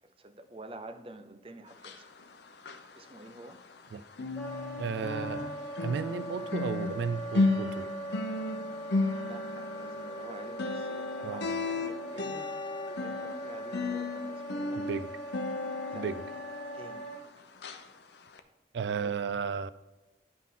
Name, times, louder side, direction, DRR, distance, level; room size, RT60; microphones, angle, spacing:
voice 1, 0.2-2.1 2.9-3.6 9.2-12.5 12.9-14.9 15.9-16.1 16.3-16.4 16.7-17.0 19.0-19.1, right 2 dB, 30° right, 0.6 m, -48 dB
sound 1, 1.7-3.9 4.1-17.3 17.6-17.8 18.3-18.4, left 3 dB, 80° left, 0.7 m, -34 dB
Wind instrument woodwind instrument, 4.4-17.2, equal, 10° left, 2.9 m, -41 dB
voice 2, 4.8-5.5 5.8-7.9 11.2-11.5 14.8-15.1 15.9-16.2 18.7-19.7, right 6 dB, 80° right, 0.3 m, -34 dB
10.0 x 5.6 x 3.7 m
head